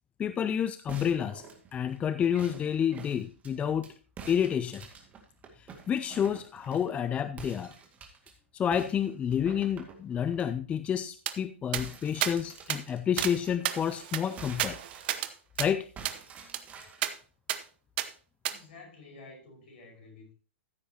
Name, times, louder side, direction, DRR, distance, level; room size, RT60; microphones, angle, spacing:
voice 1, 0.2-1.4 1.7-3.9 4.3-4.8 5.9-7.7 8.5-14.8 15.6-15.9, left 8 dB, 20° left, 0.4 m, -29 dB
sound 1, 0.9-3.9 4.2-7.0 7.4-8.3 8.7-10.5 10.9-11.0 11.3-15.6 16.0-17.1, right 5 dB, 20° right, 2.2 m, -48 dB
sound 2, 11.3-11.4 11.7-11.8 12.2-12.3 12.7-12.8 13.2-13.3 13.6-15.3 15.6-15.7 16.0-16.2 16.5-16.6 17.0-17.1 17.5-17.6 18.0-18.1 18.4-18.6, right 12 dB, 50° right, 0.9 m, -32 dB
voice 2, 18.5-20.3, left 3 dB, 60° left, 5.7 m, -51 dB
14.5 x 8.0 x 3.0 m
hypercardioid pair, 115°, 7 cm